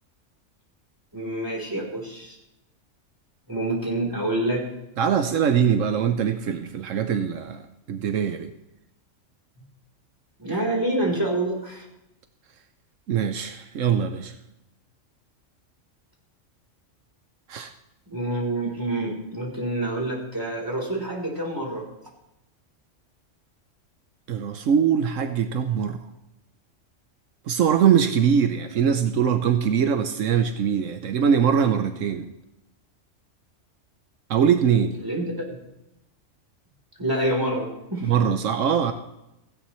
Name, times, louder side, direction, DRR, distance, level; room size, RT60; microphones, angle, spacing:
voice 1, 1.1-2.4 3.5-4.7 10.4-11.9 18.1-21.9 35.0-35.6 37.0-38.1, right 1 dB, 15° right, 0 dB, 3.7 m, -27 dB
voice 2, 5.0-7.6 7.9-8.5 13.1-14.3 17.5-17.7 24.3-26.0 27.5-32.3 34.3-35.0 38.0-38.9, right 7 dB, 80° right, 8 dB, 1.2 m, -22 dB
16.5 x 16.0 x 3.1 m, 0.90 s
omnidirectional pair, 1.3 m